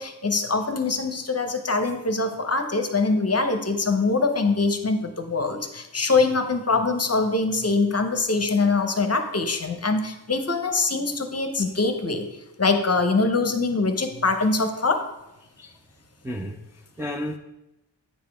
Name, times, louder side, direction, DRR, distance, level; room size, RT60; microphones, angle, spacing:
voice 1, 0.0-12.3 12.6-15.1, left 3 dB, 35° left, 7 dB, 0.7 m, -23 dB
voice 2, 16.2-17.4, equal, 5° right, 2 dB, 0.4 m, -33 dB
8.8 x 5.0 x 3.4 m, 0.92 s
wide cardioid pair, 75°, 46 cm